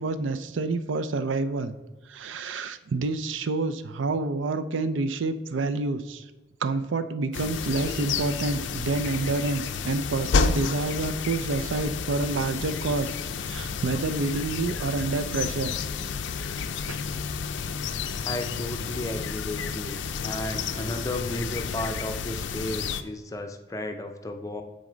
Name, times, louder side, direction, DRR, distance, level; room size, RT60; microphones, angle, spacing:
voice 1, 0.0-1.8 2.1-6.3 6.6-13.1 13.4-15.7 16.9-17.0, right 3 dB, 85° right, 10 dB, 0.5 m, -28 dB
sound 1, 7.3-23.0, left 5 dB, 80° left, 0.4 m, -31 dB
voice 2, 18.2-24.6, left 1 dB, 15° left, 6 dB, 0.5 m, -34 dB
9.4 x 4.1 x 3.9 m, 1.2 s
head